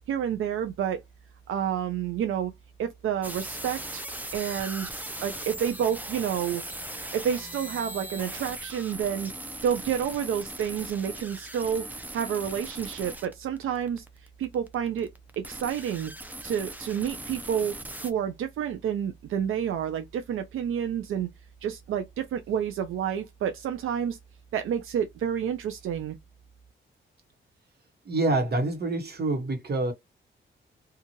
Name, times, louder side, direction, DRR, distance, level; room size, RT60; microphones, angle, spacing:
voice 1, 0.1-1.0 1.5-2.5 2.8-4.0 4.3-4.9 5.2-6.6 7.1-9.3 9.6-14.0 14.4-15.1 15.4-16.1 16.4-21.3 21.6-24.2 24.5-26.2, right 8 dB, 90° right, 0.5 m, -29 dB
sound 1, 3.2-18.1, right 1 dB, 10° right, 0.5 m, -39 dB
voice 2, 28.0-29.9, right 2 dB, 50° right, 1.1 m, -26 dB
2.7 x 2.4 x 2.8 m
cardioid pair, 75°, 21 cm